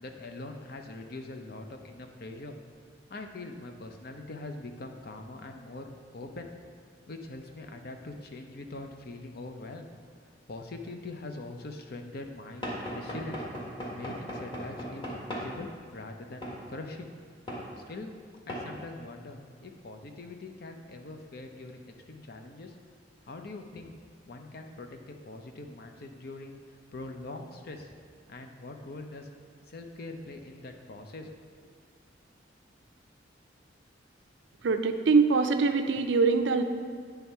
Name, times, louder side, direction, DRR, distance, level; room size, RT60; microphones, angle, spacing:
voice 1, 0.0-2.6 3.1-6.5 7.1-9.9 10.5-13.5 13.9-17.1 17.9-18.2 18.5-21.8 22.1-22.7 23.3-23.9 24.3-26.6 26.9-27.9 28.3-29.3 29.7-31.3 31.6-31.7, left 2 dB, 55° left, 5 dB, 0.6 m, -43 dB
Knock / Wood, 12.6-15.5 16.4-16.6 17.5-17.7 18.5-18.7, equal, 25° left, 1.4 m, -37 dB
voice 2, 34.6-36.6, right 4 dB, 70° right, 8 dB, 0.5 m, -23 dB
9.0 x 3.5 x 5.5 m, 2.1 s
head